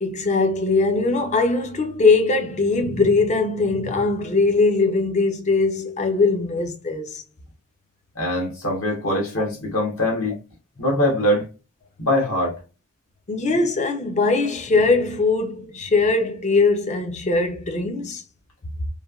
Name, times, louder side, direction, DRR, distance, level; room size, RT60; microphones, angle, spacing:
voice 1, 0.0-7.2 13.3-18.2, left 3 dB, 30° left, 0.5 m, -21 dB
voice 2, 8.1-10.4 10.8-11.5 12.0-12.6, left 1 dB, 65° left, 1.1 m, -22 dB
3.1 x 2.2 x 2.3 m
head